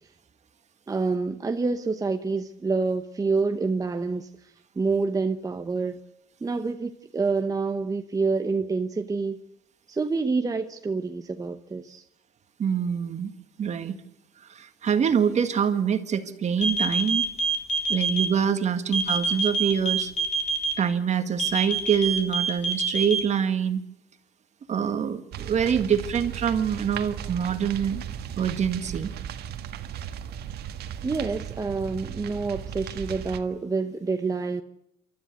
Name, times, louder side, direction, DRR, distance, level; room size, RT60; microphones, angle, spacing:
voice 1, 0.9-6.0 6.4-9.4 9.9-12.0 31.0-34.6, right 4 dB, 20° right, 1.0 m, -27 dB
voice 2, 12.6-13.3 13.6-14.0 14.5-17.2 17.9-20.1 20.8-23.8 24.7-28.0 28.4-29.1, right 7 dB, 45° right, 1.8 m, -25 dB
sound 1, 16.6-18.2 18.9-20.7 21.4-23.2, right 4 dB, 45° left, 4.4 m, -25 dB
sound 2, 25.3-33.4, right 9 dB, 70° right, 1.6 m, -36 dB
28.0 x 13.0 x 8.3 m
cardioid pair, 110°, 17 cm